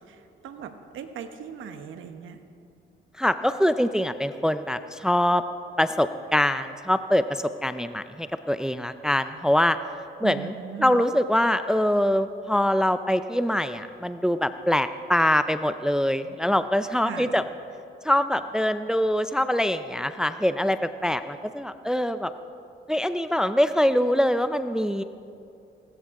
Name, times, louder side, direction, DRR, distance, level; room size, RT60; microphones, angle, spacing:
voice 1, 0.1-2.4 10.2-11.0 17.0-17.3, right 9 dB, 80° right, 8 dB, 1.2 m, -38 dB
voice 2, 3.2-5.4 5.8-9.8 10.2-10.5 10.8-17.4 18.0-22.3 22.9-25.0, left 1 dB, 5° right, 11 dB, 0.5 m, -24 dB
18.5 x 16.5 x 3.7 m, 2.6 s
cardioid pair, 90°, 20 cm